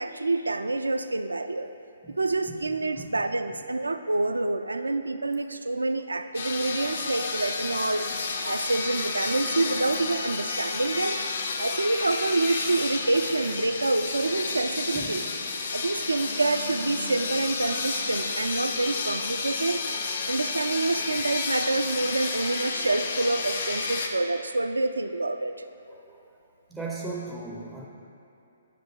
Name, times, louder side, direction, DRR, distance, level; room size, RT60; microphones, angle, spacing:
voice 1, 0.0-1.7 2.2-8.1 8.4-11.2 11.6-15.2 15.7-19.8 20.3-25.5, right 2 dB, 75° right, 9 dB, 0.3 m, -27 dB
voice 2, 2.5-3.2 14.9-15.2 22.1-22.2 25.9-26.2 26.7-27.9, right 3 dB, ahead, -3 dB, 0.4 m, -38 dB
sound 1, 6.3-24.1, left 4 dB, 50° left, 0.5 m, -31 dB
9.9 x 6.0 x 2.3 m, 2.9 s
figure-of-eight pair, 130°, 0 cm